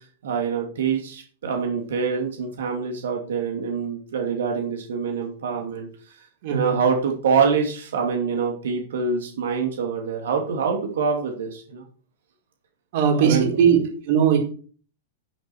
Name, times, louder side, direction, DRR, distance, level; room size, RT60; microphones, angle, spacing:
voice 1, 0.2-5.9 6.5-11.8 13.2-13.5, right 5 dB, 85° right, 2 dB, 2.8 m, -25 dB
voice 2, 6.4-6.8 12.9-14.4, right 8 dB, 45° right, 1 dB, 4.4 m, -19 dB
10.0 x 9.9 x 4.6 m, 0.42 s
supercardioid pair, 170°, 0 cm